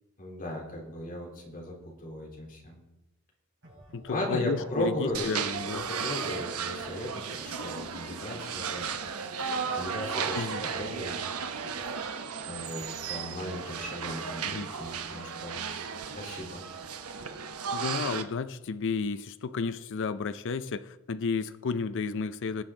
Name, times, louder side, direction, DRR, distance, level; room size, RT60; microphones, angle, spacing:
voice 1, 0.2-2.8 4.1-5.4 5.7-8.9 9.8-11.3 12.5-15.9 16.1-16.6, left 1 dB, 40° left, -1 dB, 3.4 m, -36 dB
sound 1, 3.6-15.6, right 1 dB, 60° right, 5.5 m, -53 dB
voice 2, 3.9-5.9 10.3-10.6 14.4-14.7 17.7-22.6, left 5 dB, 60° left, 12 dB, 0.5 m, -32 dB
sound 2, 5.1-18.2, right 6 dB, 85° right, 1.0 m, -35 dB
19.0 x 7.8 x 3.8 m, 0.95 s
head